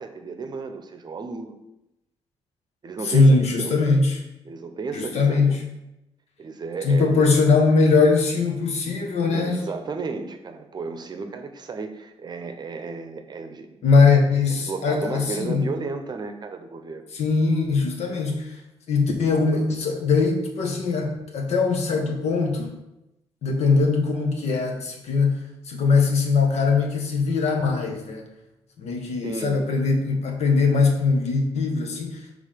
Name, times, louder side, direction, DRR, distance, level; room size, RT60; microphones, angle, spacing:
voice 1, 0.0-1.6 2.8-3.8 4.4-5.6 6.4-7.3 9.2-13.7 14.5-17.1 29.2-29.6, right 4 dB, 40° right, 7 dB, 0.7 m, -33 dB
voice 2, 3.0-4.2 4.9-5.6 6.8-9.6 13.8-15.6 17.1-18.6 18.9-22.8 23.4-28.2 28.8-32.4, left 4 dB, 85° left, 2 dB, 1.2 m, -21 dB
5.5 x 3.6 x 5.1 m, 0.90 s
cardioid pair, 105°, 11 cm